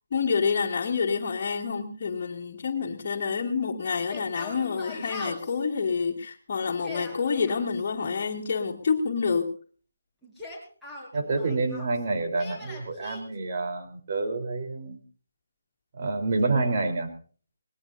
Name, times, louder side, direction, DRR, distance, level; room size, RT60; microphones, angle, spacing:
voice 1, 0.1-9.5 16.5-16.7, left 5 dB, 45° left, -4 dB, 2.6 m, -28 dB
Yell, 4.0-5.6 6.7-7.6 10.2-12.0 12.4-13.2, left 2 dB, ahead, 5.4 m, -41 dB
voice 2, 11.1-15.0 16.0-17.1, right 3 dB, 50° right, 4 dB, 3.9 m, -28 dB
22.0 x 19.5 x 2.7 m, 0.41 s
figure-of-eight pair, 155°, 0 cm